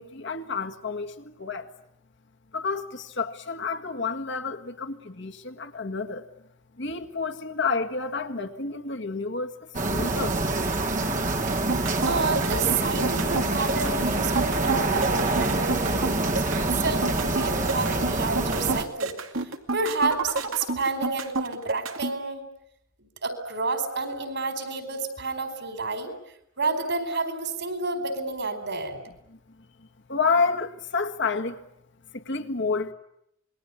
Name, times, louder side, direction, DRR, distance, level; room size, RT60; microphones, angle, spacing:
voice 1, 0.0-1.7 2.5-6.3 6.7-10.6 29.3-31.6 32.1-32.9, left 4 dB, 60° left, 1.8 m, -30 dB
sound 1, 9.7-18.8, right 2 dB, 35° right, 1.7 m, -26 dB
sound 2, 11.5-22.1, right 3 dB, 75° right, 2.3 m, -29 dB
voice 2, 12.1-19.1 19.7-22.4 23.0-26.1 26.6-29.0, right 3 dB, 60° right, 4.6 m, -30 dB
27.0 x 21.5 x 9.8 m
head